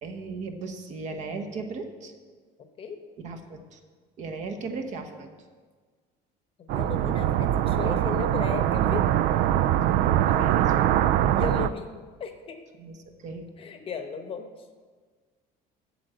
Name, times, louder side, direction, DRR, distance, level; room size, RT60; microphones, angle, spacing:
voice 1, 0.0-2.1 3.2-3.8 4.2-5.3 10.3-11.0 11.4-11.7 12.8-13.5, right 4 dB, 45° right, 4 dB, 1.1 m, -37 dB
voice 2, 6.6-9.1 11.4-11.9 12.2-12.6 13.6-14.5, left 6 dB, 30° left, 6 dB, 0.9 m, -35 dB
sound 1, 6.7-11.7, right 11 dB, 60° right, 0.4 m, -23 dB
8.4 x 7.5 x 7.8 m, 1.5 s
cardioid pair, 165°, 18 cm